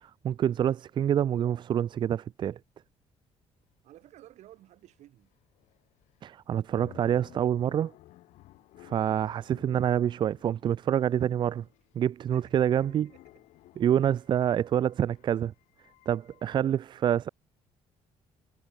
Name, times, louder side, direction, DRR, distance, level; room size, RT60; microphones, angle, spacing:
voice 1, 0.0-2.6 6.2-7.9 8.8-11.7 12.0-13.1 13.8-15.5 16.1-17.3, right 10 dB, 40° right, 0.3 m, -27 dB
sound 1, 3.7-3.8 4.0-16.7, left 17 dB, 85° left, 2.0 m, -57 dB
voice 2, 3.8-5.3 12.3-13.4, right 14 dB, 75° right, 2.5 m, -55 dB
cardioid pair, 105°, 12 cm